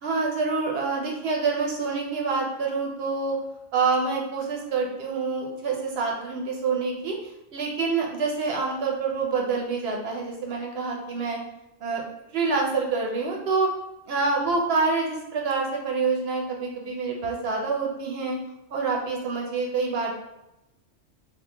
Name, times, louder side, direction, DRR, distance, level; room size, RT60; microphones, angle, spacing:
voice 1, 0.0-3.4 3.7-7.2 7.5-11.4 11.8-12.0 12.3-13.7 14.1-18.4 18.7-20.2, right 4 dB, 60° right, 0 dB, 0.7 m, -26 dB
3.0 x 2.4 x 3.3 m, 0.89 s
omnidirectional pair, 1.3 m